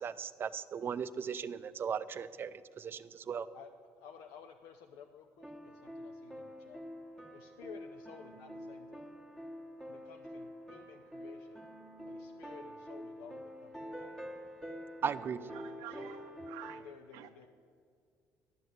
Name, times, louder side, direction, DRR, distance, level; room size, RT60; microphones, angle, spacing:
voice 1, 0.0-3.5 15.0-15.4, right 7 dB, 40° right, 0.4 m, -37 dB
voice 2, 4.0-6.8 7.3-9.0 9.9-11.6 12.1-14.5 16.0-16.2 16.8-17.5, left 7 dB, 85° left, 0.7 m, -54 dB
sound 1, 5.4-16.8, equal, 5° left, 1.3 m, -47 dB
voice 3, 15.5-16.8 17.1-17.3, right 14 dB, 85° right, 0.5 m, -49 dB
11.5 x 6.3 x 9.4 m
cardioid pair, 115°, 6 cm